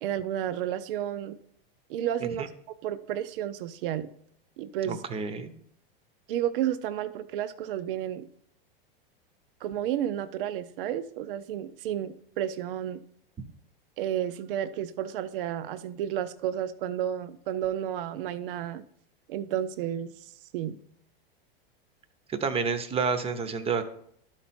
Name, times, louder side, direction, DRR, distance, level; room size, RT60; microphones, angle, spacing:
voice 1, 0.0-1.4 1.9-2.5 2.8-4.1 4.6-5.0 6.3-8.3 9.6-13.0 14.0-18.8 19.3-20.8, right 10 dB, 65° right, 13 dB, 0.6 m, -31 dB
voice 2, 4.8-5.5 22.3-23.8, right 5 dB, 20° right, 11 dB, 0.8 m, -29 dB
12.5 x 4.5 x 4.3 m, 0.68 s
supercardioid pair, 130°, 29 cm